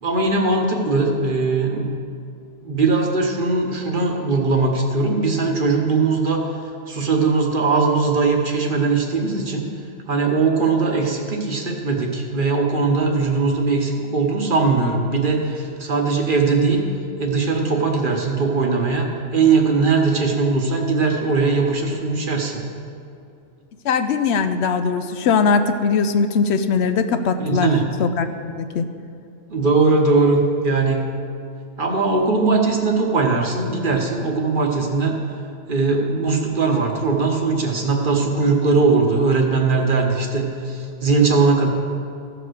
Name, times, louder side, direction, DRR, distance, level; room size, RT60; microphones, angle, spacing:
voice 1, 0.0-1.9 2.6-6.5 6.9-9.7 10.1-16.8 17.2-22.6 27.4-27.8 29.5-31.0 31.8-35.2 35.7-41.7, right 4 dB, 50° right, 2 dB, 1.2 m, -20 dB
voice 2, 23.8-27.7 28.0-28.9, left 5 dB, 75° left, 9 dB, 0.8 m, -20 dB
14.5 x 5.0 x 6.3 m, 2.4 s
omnidirectional pair, 1.2 m